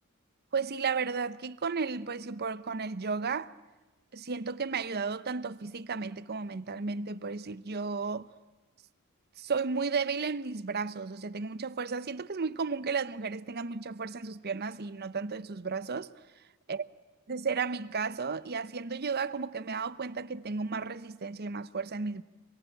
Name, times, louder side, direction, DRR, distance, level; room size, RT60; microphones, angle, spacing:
voice 1, 0.5-3.5 4.1-8.3 9.4-16.1 16.7-16.9 17.3-22.2, right 5 dB, 45° right, 0.8 m, -33 dB
25.5 x 22.5 x 9.0 m
head